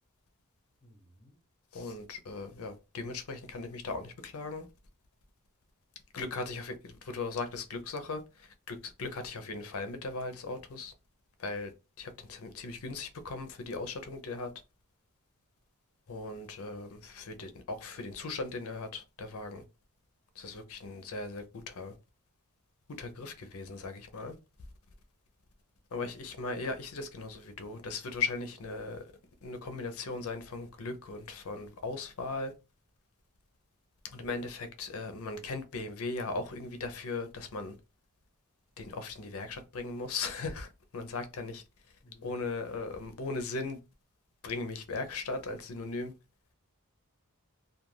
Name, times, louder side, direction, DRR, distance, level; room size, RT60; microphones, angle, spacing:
voice 1, 0.8-1.4 42.0-42.5, equal, 25° left, 0.9 m, -59 dB
voice 2, 1.7-4.7 6.1-10.9 11.4-14.5 16.1-19.6 20.4-21.9 22.9-24.4 25.9-29.0 29.4-32.5 34.0-37.8 38.8-41.6 42.2-43.8 44.4-46.1, left 3 dB, 65° left, 0.5 m, -38 dB
2.4 x 2.2 x 3.1 m
head